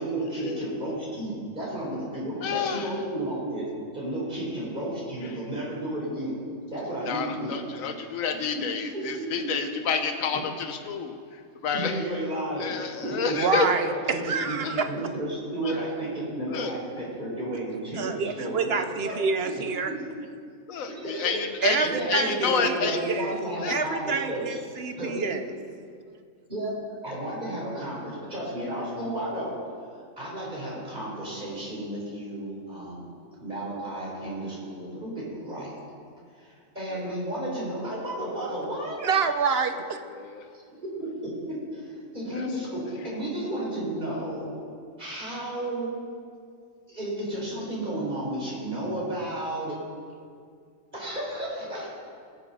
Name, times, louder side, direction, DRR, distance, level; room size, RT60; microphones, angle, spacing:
voice 1, 0.0-3.7 3.9-6.3 6.7-7.5 8.5-9.8 10.3-10.4 11.7-14.6 14.9-18.7 19.0-20.0 20.9-21.4 21.8-24.6 25.0-25.3 26.5-26.7 27.0-29.6 30.2-33.1 33.4-35.8 36.4-39.0 39.5-39.6 40.8-44.6 45.0-45.9 46.9-49.8 50.9-51.9, right 1 dB, 35° right, -6 dB, 4.3 m, -32 dB
voice 2, 2.4-2.8 7.1-10.4 10.7-11.1 11.6-11.9 12.6-13.7 14.6-14.7 15.6-15.7 16.5-16.7 20.7-23.0 23.6-23.8 40.2-40.3, left 6 dB, 90° left, 6 dB, 1.3 m, -29 dB
voice 3, 13.4-14.9 18.0-19.9 21.6-23.4 23.7-25.5 39.0-40.0, right 5 dB, 55° right, 8 dB, 0.9 m, -27 dB
20.5 x 7.3 x 5.5 m, 2.2 s
omnidirectional pair, 1.4 m